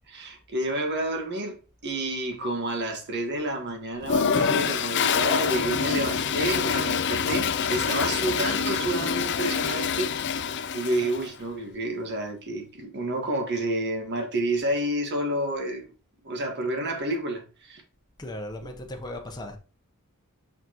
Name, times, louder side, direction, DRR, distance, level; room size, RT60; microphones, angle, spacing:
voice 1, 0.1-10.1 10.7-15.9 16.2-17.8, right 1 dB, 55° right, 1.6 m, -29 dB
Toilet flush, 4.0-11.3, left 6 dB, 55° left, 0.5 m, -26 dB
voice 2, 18.2-19.6, left 1 dB, 20° left, 0.9 m, -37 dB
6.1 x 5.8 x 3.0 m
head